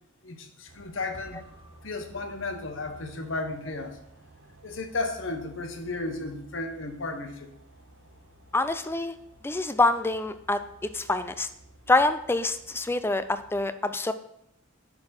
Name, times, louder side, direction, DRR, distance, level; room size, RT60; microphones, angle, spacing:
voice 1, 0.2-1.4 1.8-4.0 4.6-7.5, left 3 dB, 75° left, 5 dB, 1.1 m, -34 dB
sound 1, 0.7-13.6, right 1 dB, 70° right, 1.0 m, -54 dB
sound 2, 1.1-3.2, equal, 20° right, 0.9 m, -54 dB
voice 2, 8.5-9.1 9.4-11.5 11.9-14.1, left 2 dB, 10° left, 11 dB, 0.4 m, -26 dB
11.5 x 4.4 x 4.3 m, 0.75 s
head